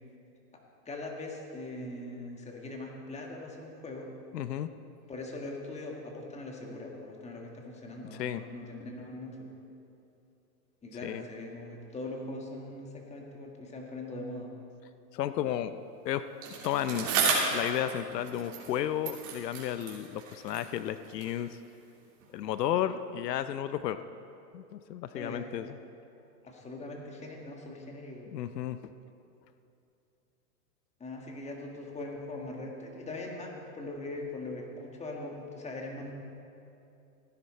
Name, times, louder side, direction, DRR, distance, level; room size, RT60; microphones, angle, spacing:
voice 1, 0.5-4.1 5.1-9.5 10.8-14.5 25.1-25.5 26.5-28.4 31.0-36.1, left 2 dB, 15° left, 0 dB, 1.7 m, -41 dB
voice 2, 4.3-4.7 8.1-8.4 11.0-11.2 15.1-15.8 16.0-16.2 16.6-17.1 17.5-21.6 22.3-24.0 24.5-25.7 28.3-28.8, left 11 dB, 90° left, 12 dB, 0.7 m, -33 dB
Bicycle, 16.4-18.8 19.0-21.4 22.2-22.3, right 4 dB, 40° right, 3.3 m, -33 dB
16.0 x 10.0 x 4.3 m, 2.7 s
hypercardioid pair, 125°, 47 cm